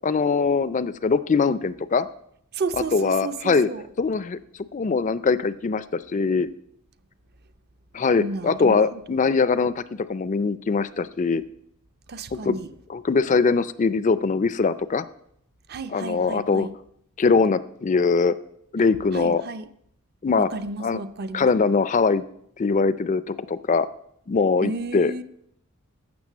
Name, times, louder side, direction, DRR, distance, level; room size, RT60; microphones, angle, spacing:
voice 1, 0.0-2.1 2.9-3.7 4.0-4.4 4.7-6.5 7.9-9.8 10.1-11.4 12.3-12.6 12.9-15.0 15.9-16.7 17.2-18.3 18.7-19.4 20.2-20.5 20.8-21.0 21.3-22.2 22.6-23.9 24.3-25.2, left 4 dB, 35° left, 0.4 m, -22 dB
voice 2, 2.5-3.9 8.2-9.0 12.1-12.7 15.7-16.8 19.1-19.7 20.4-21.5 24.6-25.2, right 3 dB, 45° right, 0.6 m, -32 dB
12.5 x 7.3 x 7.3 m
head